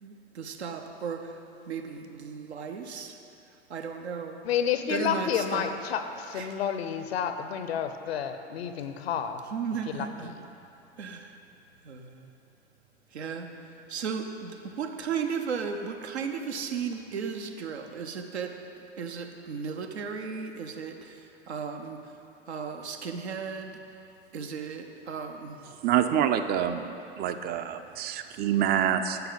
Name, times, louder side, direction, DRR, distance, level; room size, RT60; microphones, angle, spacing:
voice 1, 0.0-1.3 1.7-3.2 3.7-4.4 4.9-5.8 6.3-6.5 9.5-10.3 11.0-11.3 11.8-12.3 13.1-13.5 13.9-18.6 19.0-22.0 22.5-23.8 24.3-25.6, right 6 dB, 80° right, 5 dB, 0.8 m, -35 dB
voice 2, 4.4-9.4 9.9-10.3, left 8 dB, 70° left, 9 dB, 0.7 m, -30 dB
voice 3, 25.8-29.2, right 9 dB, 30° right, 9 dB, 0.5 m, -26 dB
11.5 x 6.9 x 4.0 m, 2.8 s
figure-of-eight pair, 85°, 32 cm